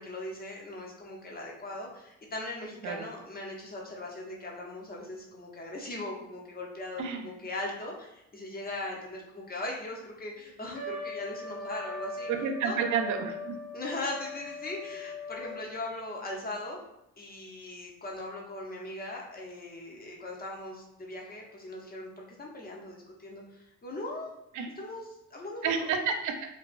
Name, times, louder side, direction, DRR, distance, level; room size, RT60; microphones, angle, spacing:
voice 1, 0.0-12.3 12.6-12.8 13.7-16.8 17.2-24.3 24.8-25.9, left 2 dB, 30° left, -1 dB, 0.6 m, -39 dB
Trumpet, 10.7-15.7, left 2 dB, 75° left, 0.9 m, -40 dB
voice 2, 12.3-13.6 24.6-24.7 25.6-26.5, right 6 dB, 75° right, 5 dB, 0.4 m, -30 dB
2.3 x 2.2 x 2.4 m, 0.85 s
cardioid pair, 90°, 30 cm